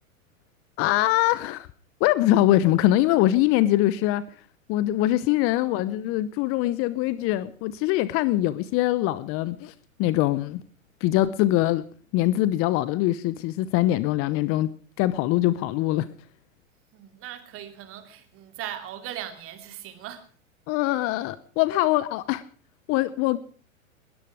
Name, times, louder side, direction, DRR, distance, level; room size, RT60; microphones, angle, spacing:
voice 1, 0.8-1.7 2.0-4.2 4.7-9.7 10.0-10.6 11.0-11.8 12.1-14.7 15.0-16.1 20.7-22.4 22.9-23.4, left 15 dB, 35° left, 0.9 m, -23 dB
voice 2, 5.3-5.8 16.9-20.2, right 11 dB, 30° right, 3.0 m, -39 dB
21.0 x 13.5 x 4.8 m
hypercardioid pair, 120°, 41 cm